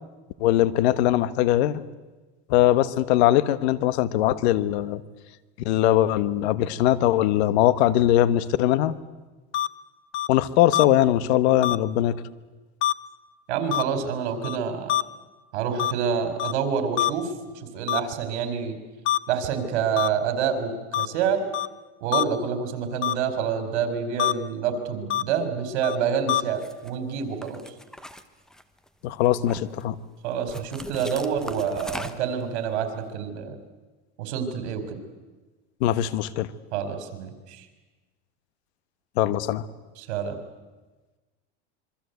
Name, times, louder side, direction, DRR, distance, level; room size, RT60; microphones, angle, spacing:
voice 1, 0.4-1.8 2.5-5.0 5.6-8.9 10.3-12.2 29.0-30.0 35.8-36.5 39.2-39.6, left 13 dB, 75° left, 15 dB, 1.3 m, -21 dB
flat lining beeps, 9.5-9.7 10.1-10.3 10.7-10.8 11.6-11.8 12.8-12.9 13.7-13.8 14.4-14.6 14.9-15.0 15.8-15.9 16.4-16.5 17.0-17.1 17.9-18.0 19.0-19.2 20.0-20.1 20.9-21.1 21.5-21.7 22.1-22.2 23.0-23.1 24.2-24.3 25.1-25.2 25.8-26.0 26.3-26.4, left 12 dB, 35° left, 0.7 m, -24 dB
voice 2, 13.5-15.0 15.5-18.8 19.3-21.4 22.0-27.6 30.2-33.6 34.2-35.0 36.7-37.6 40.0-40.4, right 7 dB, 75° right, 7 dB, 4.5 m, -27 dB
sound 1, 26.5-26.9 27.4-28.9 29.2-29.8 30.5-32.4, equal, ahead, 1.0 m, -40 dB
26.5 x 23.5 x 8.2 m, 1.2 s
supercardioid pair, 150°, 33 cm